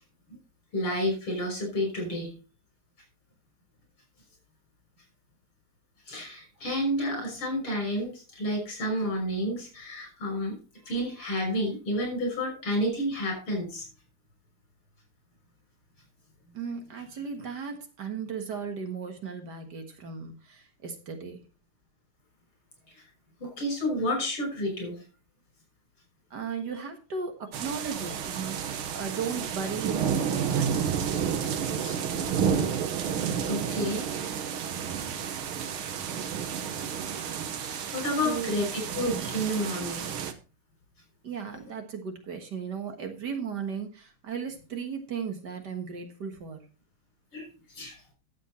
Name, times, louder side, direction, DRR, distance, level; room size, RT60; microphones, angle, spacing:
voice 1, 0.7-2.3 6.1-10.6 10.8-13.9 22.9-23.0 23.4-25.0 31.8-32.0 33.4-34.4 37.6-40.0 47.3-47.9, equal, 80° left, 2 dB, 6.7 m, -30 dB
voice 2, 16.5-21.4 26.3-31.0 38.2-38.7 41.2-46.6, right 6 dB, 55° right, 6 dB, 2.0 m, -36 dB
sound 1, 27.5-40.3, right 7 dB, 80° right, 2.0 m, -31 dB
12.5 x 7.6 x 4.2 m, 0.33 s
omnidirectional pair, 2.3 m